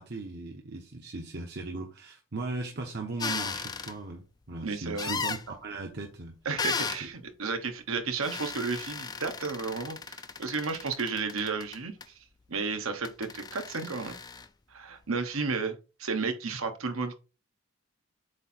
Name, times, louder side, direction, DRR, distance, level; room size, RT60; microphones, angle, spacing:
voice 1, 0.0-6.4 7.0-7.1, right 3 dB, 50° right, 0.9 m, -38 dB
sound 1, 3.2-3.9 5.0-5.4 6.6-7.0 8.2-12.0 13.1-14.5, left 5 dB, 20° left, 0.4 m, -35 dB
voice 2, 4.6-5.1 6.4-12.1 12.5-14.1 14.7-17.2, right 4 dB, 75° right, 1.2 m, -33 dB
7.9 x 2.8 x 4.3 m
head